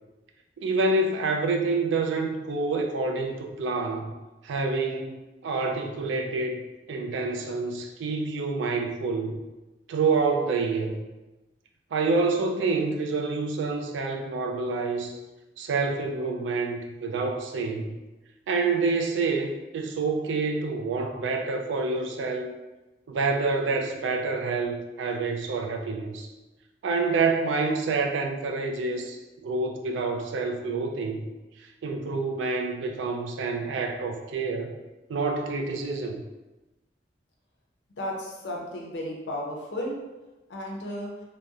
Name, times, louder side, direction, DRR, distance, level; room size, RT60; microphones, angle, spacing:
voice 1, 0.6-4.1 4.4-6.6 6.9-9.4 9.9-11.0 11.9-15.2 15.6-18.0 18.5-22.5 23.1-26.3 26.8-31.3 31.8-34.8 35.1-36.2, right 3 dB, 85° right, 3 dB, 0.3 m, -27 dB
voice 2, 38.0-39.9 40.5-41.1, left 1 dB, 75° left, -1 dB, 0.6 m, -33 dB
2.7 x 2.0 x 2.3 m, 1.1 s
head